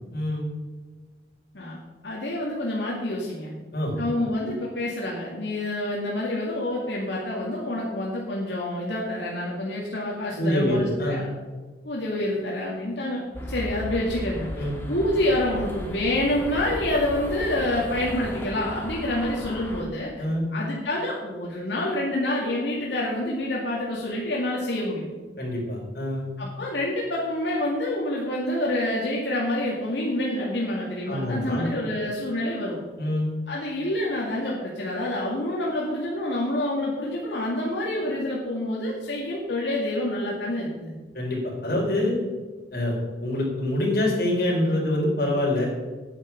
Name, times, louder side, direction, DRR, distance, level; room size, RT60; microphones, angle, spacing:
voice 1, 0.1-0.4 3.7-3.9 10.4-11.3 14.6-14.8 20.2-20.4 25.4-26.2 31.1-31.7 33.0-33.3 41.1-42.1 42.7-42.9 43.2-45.7, left 1 dB, 55° left, -3 dB, 4.4 m, -25 dB
voice 2, 1.5-3.5 4.0-11.3 11.8-14.5 14.9-20.1 20.5-25.1 26.4-32.8 33.5-40.9, left 1 dB, 85° left, -4 dB, 2.3 m, -27 dB
sound 1, 13.3-19.8, equal, 15° left, 1.8 m, -35 dB
9.7 x 9.4 x 5.8 m, 1.3 s
head